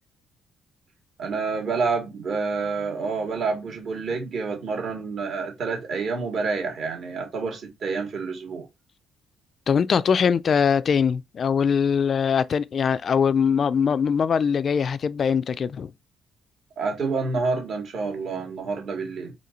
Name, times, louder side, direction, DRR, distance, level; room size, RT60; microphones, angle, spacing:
voice 1, 1.2-8.6 16.8-19.3, right 4 dB, 60° right, 2.1 m, -28 dB
voice 2, 9.7-15.9, left 6 dB, 50° left, 0.3 m, -22 dB
4.3 x 2.7 x 3.9 m
cardioid pair, 90°, 0 cm